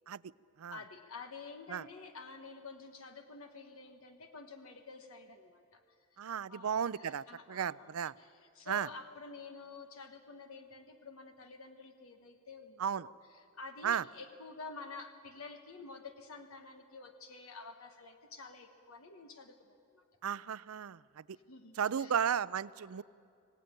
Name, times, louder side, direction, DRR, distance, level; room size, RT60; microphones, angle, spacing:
voice 1, 0.7-5.8 6.2-6.3 6.5-20.0 21.3-22.2, left 4 dB, 75° left, 6 dB, 1.3 m, -50 dB
voice 2, 6.2-8.1 8.7-8.9 12.8-13.1 13.8-14.0 20.2-21.0 21.8-23.0, right 8 dB, 80° right, 19 dB, 0.5 m, -34 dB
25.5 x 17.5 x 9.0 m, 2.5 s
head